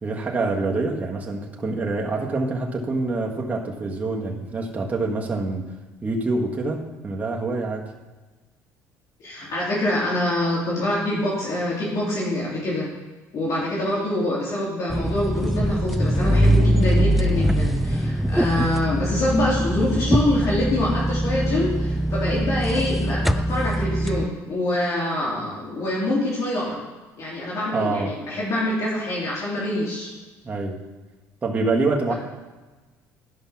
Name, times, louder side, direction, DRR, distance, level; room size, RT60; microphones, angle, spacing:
voice 1, 0.0-5.7 6.0-7.8 27.7-28.2 30.4-30.8 31.4-32.1, right 3 dB, 20° right, -1 dB, 1.6 m, -26 dB
voice 2, 9.2-12.9 13.3-26.8 27.2-30.1, left 1 dB, 50° left, -6 dB, 3.2 m, -25 dB
sound 1, 14.9-24.3, equal, ahead, 0.3 m, -22 dB
11.5 x 5.6 x 5.9 m, 1.2 s
cardioid pair, 125°, 7 cm